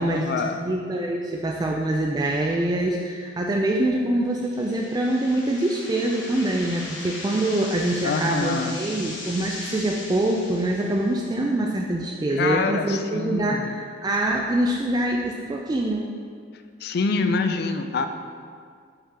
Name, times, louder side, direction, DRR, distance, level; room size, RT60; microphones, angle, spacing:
voice 1, 0.0-0.7 8.0-8.8 12.3-13.7 16.8-18.1, left 4 dB, 55° left, 8 dB, 0.4 m, -25 dB
voice 2, 0.6-16.1, right 1 dB, 20° right, 0 dB, 0.3 m, -24 dB
sound 1, 4.4-11.3, left 2 dB, 80° left, 1.2 m, -38 dB
5.6 x 3.7 x 5.5 m, 2.1 s
head